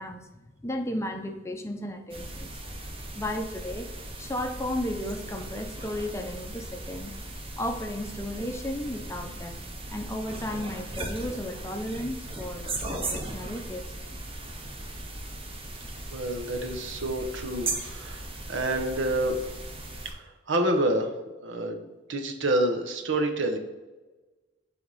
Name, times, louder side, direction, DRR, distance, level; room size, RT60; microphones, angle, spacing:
voice 1, 0.0-2.6 3.1-3.9 4.2-7.1 7.6-9.6 9.9-13.8, left 1 dB, 15° left, 5 dB, 0.5 m, -34 dB
sound 1, 2.1-20.1, right 2 dB, 30° right, 0.9 m, -38 dB
voice 2, 16.1-18.2 18.5-19.5 20.0-21.1 21.4-23.6, right 1 dB, 80° right, 5 dB, 0.9 m, -28 dB
7.8 x 3.5 x 4.0 m, 1.2 s
head